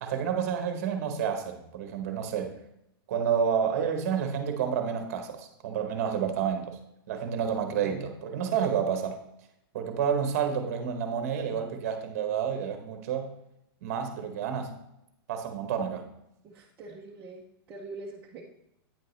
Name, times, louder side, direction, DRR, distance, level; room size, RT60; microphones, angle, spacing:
voice 1, 0.0-2.5 3.1-6.8 7.1-9.2 9.7-13.3 13.8-14.8 15.3-16.1, right 7 dB, 40° right, 6 dB, 0.8 m, -29 dB
voice 2, 16.4-18.4, right 3 dB, 15° right, -4 dB, 0.4 m, -44 dB
8.8 x 5.4 x 3.1 m, 0.81 s
supercardioid pair, 180°, 13 cm